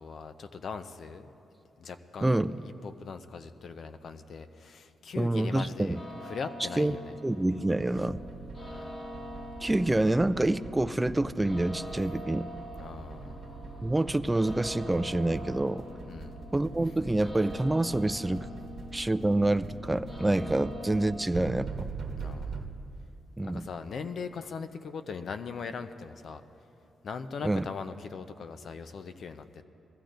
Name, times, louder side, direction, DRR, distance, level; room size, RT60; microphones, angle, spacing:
voice 1, 0.0-1.3 1.8-2.3 2.6-7.1 8.7-9.0 12.8-13.4 16.1-16.4 22.2-22.7 23.4-26.4 27.0-29.6, left 5 dB, 60° left, 10 dB, 0.6 m, -40 dB
voice 2, 2.2-2.6 5.2-6.0 6.8-7.0 7.2-8.2 9.6-12.5 13.8-15.9 16.5-18.5 18.9-21.9 23.4-23.7 27.4-27.7, right 1 dB, 10° right, 13 dB, 0.3 m, -27 dB
sound 1, 5.9-21.1, left 1 dB, 35° left, 2.5 m, -44 dB
sound 2, 8.0-22.6, right 4 dB, 65° right, 1.0 m, -43 dB
21.0 x 15.0 x 2.6 m, 2.8 s
cardioid pair, 95°, 0 cm